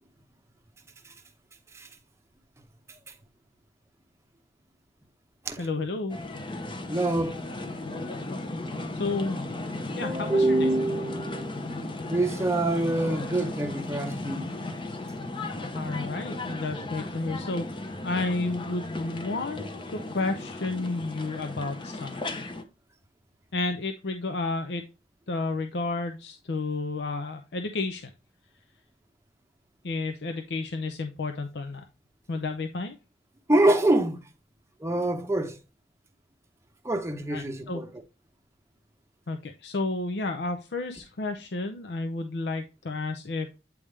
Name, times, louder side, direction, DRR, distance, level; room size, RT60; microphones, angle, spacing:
voice 1, 5.6-6.2 8.9-9.4 10.0-10.7 15.7-19.6 19.9-22.4 23.5-24.8 25.3-28.1 29.8-31.8 32.3-33.0 37.3-37.8 39.3-43.6, left 3 dB, 65° left, 0.6 m, -31 dB
sound 1, 6.1-22.6, left 2 dB, 30° left, 0.8 m, -35 dB
voice 2, 6.9-7.4 10.0-11.7 12.1-14.5 33.5-34.2 34.8-35.5 36.8-37.9, right 1 dB, 15° right, 0.7 m, -25 dB
8.5 x 3.5 x 3.2 m
head